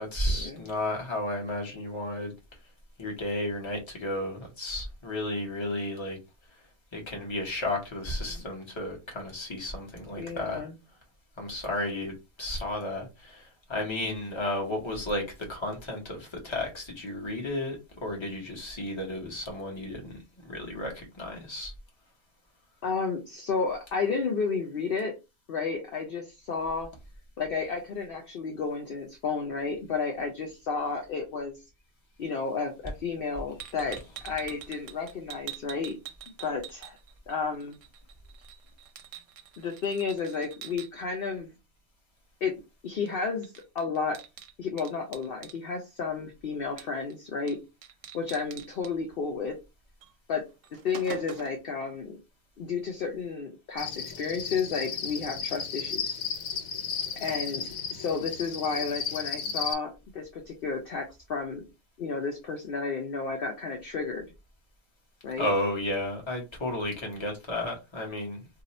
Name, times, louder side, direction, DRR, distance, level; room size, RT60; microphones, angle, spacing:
voice 1, 0.0-2.3 3.0-6.2 6.5-10.7 11.4-21.7 65.4-68.5, left 1 dB, 25° left, 0.9 m, -33 dB
voice 2, 10.2-10.7 22.8-25.2 25.5-26.9 27.4-31.6 32.2-36.0 36.4-37.0 37.3-37.8 39.6-41.5 42.4-42.5 42.8-44.2 44.6-47.6 48.1-49.6 50.3-52.2 52.6-56.2 57.1-61.6 62.0-64.3 65.2-65.5, left 5 dB, 55° left, 0.6 m, -32 dB
sound 1, 33.6-37.3 37.6-40.9 43.1-43.2 43.4-45.6 46.8-47.1 47.5-47.6 47.8-48.9 50.0-50.1 50.5-51.7, right 9 dB, 70° right, 0.9 m, -45 dB
Cricket, 53.8-59.7, left 6 dB, 80° left, 1.0 m, -34 dB
2.7 x 2.3 x 4.0 m
omnidirectional pair, 1.4 m